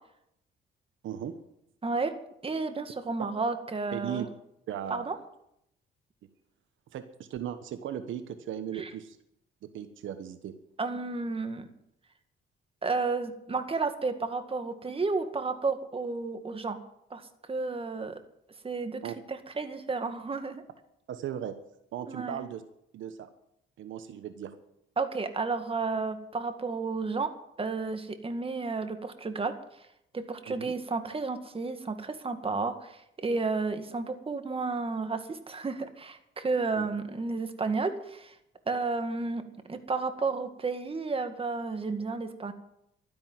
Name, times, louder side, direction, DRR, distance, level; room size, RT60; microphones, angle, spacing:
voice 1, 1.0-1.4 3.9-4.3 4.7-5.1 6.9-9.2 9.6-10.5 19.0-19.1 21.1-21.5 21.9-22.6 22.9-23.3 23.8-24.6 30.5-30.7 36.8-36.9, right 10 dB, 75° right, 10 dB, 1.2 m, -37 dB
voice 2, 1.8-2.1 2.4-4.3 4.9-5.2 8.8-8.9 10.8-11.7 12.8-16.8 17.1-18.2 18.6-19.0 19.3-20.6 22.1-22.4 25.0-27.3 27.6-29.6 30.1-38.3 38.7-39.4 39.7-42.5, right 4 dB, 30° right, 8 dB, 1.9 m, -32 dB
12.5 x 10.5 x 9.3 m, 0.78 s
cardioid pair, 90°, 20 cm